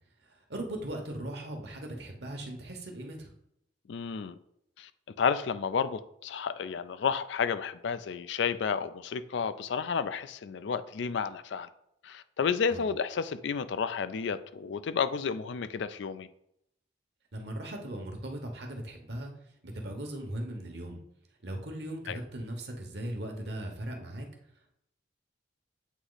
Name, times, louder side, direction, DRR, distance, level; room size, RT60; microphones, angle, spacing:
voice 1, 0.2-3.3 12.7-12.8 17.3-19.3 19.6-21.0 21.4-24.3, right 1 dB, 60° right, 1.1 m, -38 dB
voice 2, 3.9-4.3 4.8-4.9 5.2-11.7 12.0-16.3 22.1-22.2, left 6 dB, 70° left, 0.4 m, -31 dB
8.1 x 3.0 x 4.0 m
head